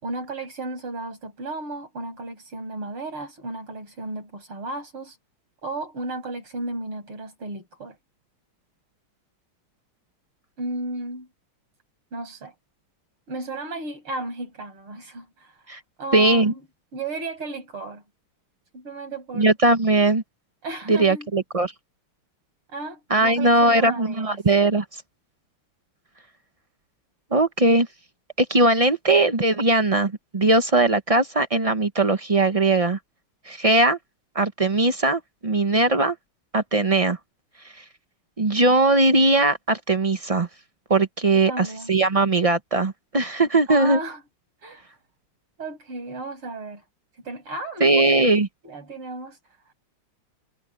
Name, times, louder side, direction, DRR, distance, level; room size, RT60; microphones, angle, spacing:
voice 1, 0.0-5.2 5.6-8.0 10.6-11.3 12.1-12.5 13.3-16.6 16.9-18.0 18.7-19.5 20.6-21.3 22.7-24.4 41.3-41.9 43.7-44.2 44.6-44.9 45.6-46.8 47.2-48.1 48.6-49.4, right 2 dB, 85° right, 7.4 m, -34 dB
voice 2, 16.1-16.5 19.3-20.2 20.9-21.7 23.1-24.8 27.3-27.9 28.4-33.0 33.5-34.0 34.3-36.2 36.5-37.2 38.4-40.5 40.9-44.0 47.8-48.5, right 2 dB, 45° right, 0.4 m, -20 dB
omnidirectional pair, 2.3 m